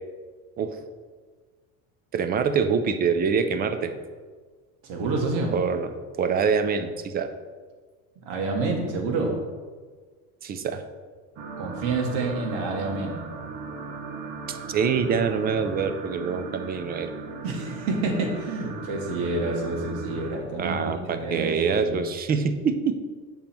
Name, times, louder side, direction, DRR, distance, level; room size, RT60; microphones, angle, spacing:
voice 1, 2.1-3.9 5.5-7.3 10.4-10.8 14.5-17.1 20.6-23.0, right 6 dB, 25° right, 9 dB, 0.4 m, -25 dB
voice 2, 4.8-5.5 8.2-9.3 11.6-13.2 17.4-22.0, right 3 dB, 85° right, 1 dB, 1.8 m, -28 dB
sound 1, 11.4-20.4, right 4 dB, 60° right, 1.3 m, -37 dB
7.2 x 5.3 x 4.4 m, 1.5 s
cardioid pair, 145°, 38 cm